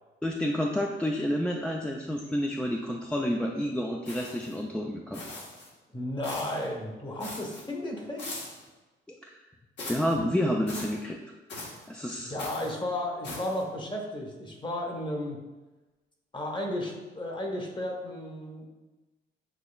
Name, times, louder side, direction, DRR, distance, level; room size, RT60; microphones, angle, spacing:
voice 1, 0.2-5.2 9.2-9.4 9.9-11.2 11.9-12.3, equal, 5° left, -1 dB, 0.4 m, -29 dB
sound 1, 4.0-4.6 5.1-5.7 6.2-6.6 7.2-7.6 8.2-8.6 9.8-10.1 10.7-11.0 11.5-11.9 12.4-12.7 13.2-13.6, left 2 dB, 65° left, 1.3 m, -40 dB
voice 2, 5.9-8.3 12.2-15.4 16.3-18.6, left 1 dB, 25° left, 1 dB, 1.0 m, -33 dB
7.6 x 2.9 x 2.3 m, 1.2 s
cardioid pair, 90°, 20 cm